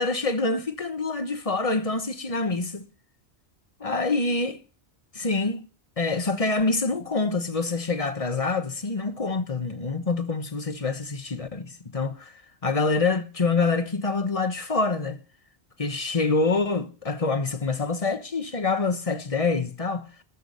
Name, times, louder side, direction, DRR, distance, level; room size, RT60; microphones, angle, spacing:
voice 1, 0.0-2.9 3.8-4.5 5.1-5.7 6.0-12.3 12.6-15.2 15.8-20.1, left 3 dB, 30° left, 1.2 m, -26 dB
13.5 x 6.1 x 9.9 m
omnidirectional pair, 1.1 m